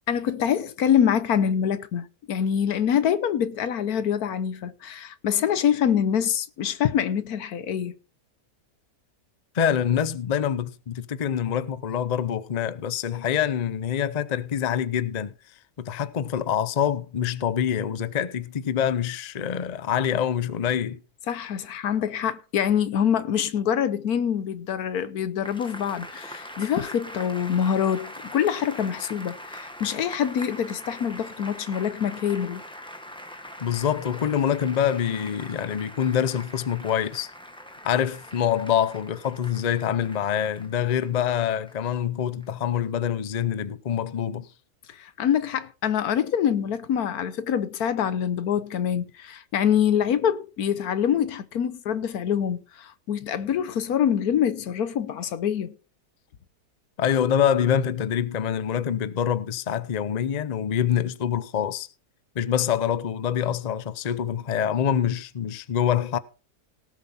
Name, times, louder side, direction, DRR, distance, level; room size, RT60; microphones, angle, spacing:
voice 1, 0.1-8.0 21.3-32.6 44.9-55.7, left 8 dB, 70° left, 1.3 m, -25 dB
voice 2, 9.5-15.3 15.8-21.0 33.6-37.3 37.8-44.5 57.0-61.9 62.3-66.2, left 9 dB, 40° left, 0.6 m, -25 dB
sound 1, 25.4-42.0 42.4-42.5, left 1 dB, 5° left, 1.3 m, -42 dB
18.0 x 7.2 x 4.2 m
omnidirectional pair, 1.7 m